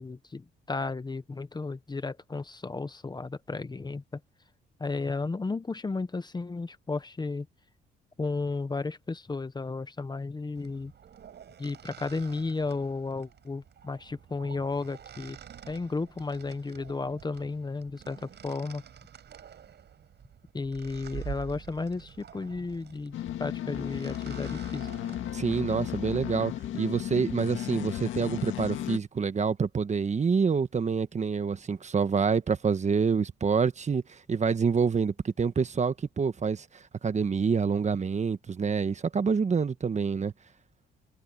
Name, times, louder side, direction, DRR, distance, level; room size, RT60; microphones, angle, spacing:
voice 1, 0.0-4.2 4.8-7.5 8.2-10.9 11.6-15.4 15.7-18.8 20.5-24.9, left 3 dB, 20° left, 1.0 m, -33 dB
sound 1, 10.6-26.4, right 8 dB, 60° right, 5.5 m, -48 dB
sound 2, 23.1-29.0, left 12 dB, 80° left, 1.9 m, -34 dB
voice 2, 25.3-40.3, right 5 dB, 35° right, 1.3 m, -27 dB
cardioid pair, 90°, 20 cm